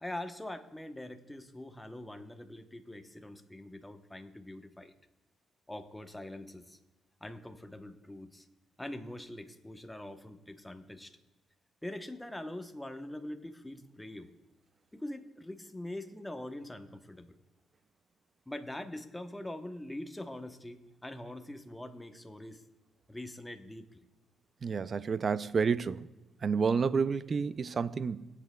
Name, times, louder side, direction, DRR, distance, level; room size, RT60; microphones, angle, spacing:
voice 1, 0.0-4.9 5.7-6.8 7.2-8.5 8.8-11.1 11.8-14.3 14.9-17.4 18.5-22.6 23.1-24.1, left 1 dB, 10° left, 0.8 m, -43 dB
voice 2, 24.6-26.1 26.4-28.3, right 5 dB, 40° right, 0.4 m, -30 dB
18.5 x 8.3 x 2.2 m
cardioid pair, 90°, 0 cm